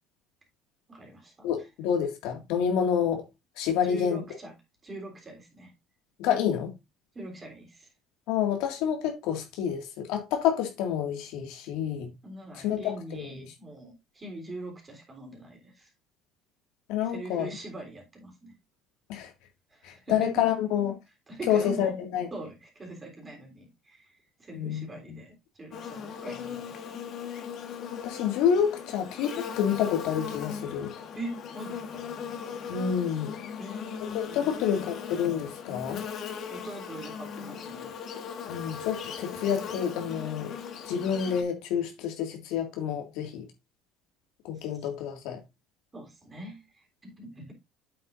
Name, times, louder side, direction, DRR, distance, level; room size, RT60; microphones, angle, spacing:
voice 1, 0.9-1.5 3.8-4.5 4.8-5.7 7.1-7.9 12.2-15.9 17.0-18.5 19.7-20.4 21.3-21.9 22.3-27.0 31.2-32.1 33.6-35.0 36.5-38.0 45.9-47.5, right 1 dB, 20° right, 3.5 m, -42 dB
voice 2, 1.4-3.2 3.6-4.2 6.2-6.7 8.3-12.1 12.6-13.4 16.9-17.5 19.1-19.3 19.8-20.9 21.5-22.3 24.5-24.8 27.9-30.9 32.7-33.4 34.3-36.0 38.5-40.5 40.8-43.5 44.5-45.4, left 8 dB, 80° left, 2.1 m, -28 dB
Buzz, 25.7-41.4, left 7 dB, 50° left, 1.5 m, -38 dB
8.4 x 7.8 x 2.6 m
cardioid pair, 135°, 0 cm